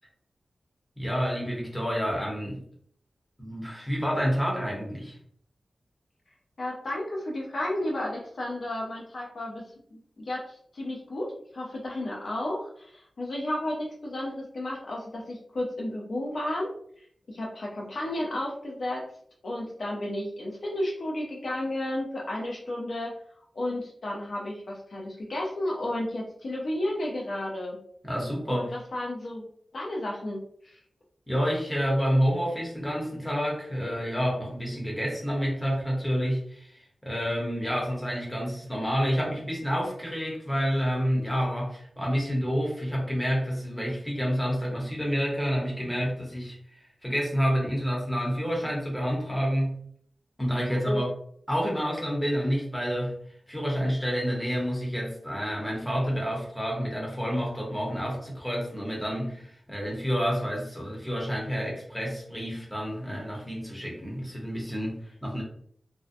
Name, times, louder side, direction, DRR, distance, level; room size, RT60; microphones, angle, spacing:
voice 1, 1.0-2.6 3.4-5.2 28.0-28.7 31.3-49.8 50.4-51.1 51.5-53.2 53.5-65.4, equal, 5° left, -3 dB, 0.8 m, -29 dB
voice 2, 6.6-16.7 17.3-19.1 19.4-23.1 23.5-27.8 28.5-29.5 29.7-30.8 50.7-51.0, left 1 dB, 60° left, -2 dB, 0.5 m, -32 dB
2.6 x 2.1 x 2.5 m, 0.64 s
wide cardioid pair, 130°, 0 cm